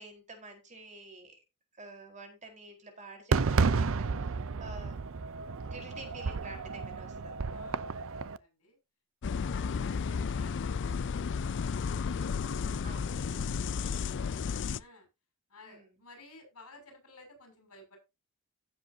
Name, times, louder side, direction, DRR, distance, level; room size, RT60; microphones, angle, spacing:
voice 1, 0.0-1.3 1.8-5.0 5.6-7.4 9.3-9.5 12.8-13.4 15.6-15.9, right 2 dB, 35° right, 3 dB, 4.4 m, -49 dB
Fireworks, 3.3-8.4, right 4 dB, 65° right, 0.6 m, -31 dB
voice 2, 7.5-7.9 8.2-8.8 9.3-15.1 15.5-18.0, left 2 dB, 80° left, 4 dB, 6.3 m, -55 dB
sound 1, 9.2-14.8, left 5 dB, 55° left, 0.5 m, -33 dB
16.0 x 7.6 x 2.8 m, 0.25 s
head